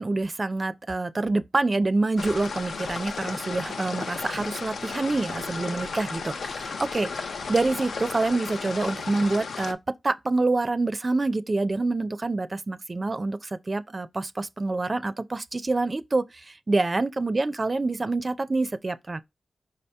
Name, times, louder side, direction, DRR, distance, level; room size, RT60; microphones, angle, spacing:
voice 1, 0.0-9.8 10.0-19.2, right 3 dB, 40° right, 0.4 m, -26 dB
sound 1, 2.2-9.7, left 4 dB, 85° left, 0.4 m, -34 dB
5.0 x 2.8 x 3.3 m
cardioid pair, 55°, 0 cm